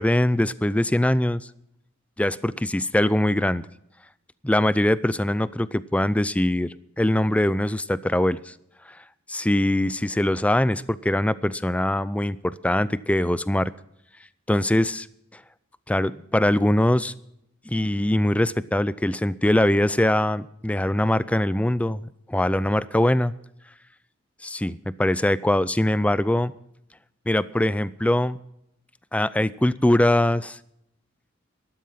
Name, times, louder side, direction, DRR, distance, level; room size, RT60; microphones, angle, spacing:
voice 1, 0.0-1.5 2.2-3.6 4.4-8.5 8.9-9.0 9.3-13.7 14.5-15.1 15.3-15.4 15.9-17.1 17.7-23.3 24.4-26.5 27.3-28.4 29.1-30.6, left 1 dB, 5° left, 17 dB, 0.4 m, -22 dB
13.0 x 12.5 x 5.7 m, 0.76 s
head